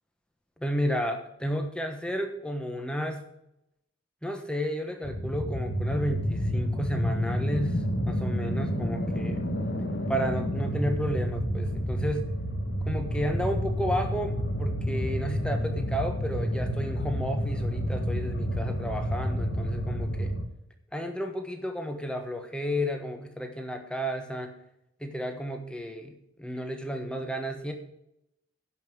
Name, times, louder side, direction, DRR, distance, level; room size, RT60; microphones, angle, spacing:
voice 1, 0.6-3.3 4.2-9.4 10.1-12.3 12.8-20.3 20.9-24.6 25.0-27.7, equal, 5° left, 5 dB, 1.2 m, -32 dB
sound 1, 5.0-20.5, equal, 50° left, 1.5 m, -29 dB
10.5 x 5.7 x 8.0 m, 0.82 s
head